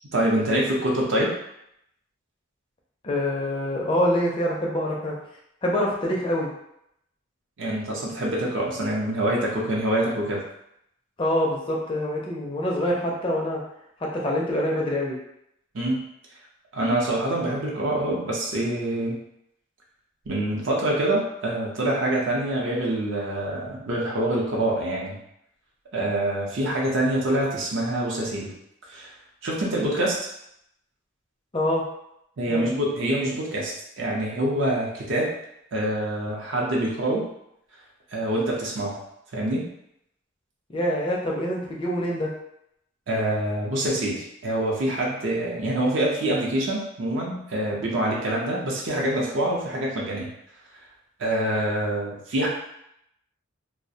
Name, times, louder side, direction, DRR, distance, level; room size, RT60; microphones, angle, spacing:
voice 1, 0.1-1.3 7.6-10.4 15.7-16.0 16.7-19.2 20.3-25.2 25.9-28.5 28.9-29.1 29.4-30.2 32.4-35.3 35.7-37.3 38.1-39.0 39.3-39.6 43.1-50.3 51.2-52.5, right 1 dB, 60° right, -3 dB, 0.5 m, -25 dB
voice 2, 3.0-5.2 5.6-6.5 11.2-13.6 14.0-15.2 31.5-31.8 32.5-32.7 40.7-42.3, left 1 dB, 25° left, -2 dB, 0.4 m, -25 dB
2.4 x 2.0 x 2.6 m, 0.77 s
head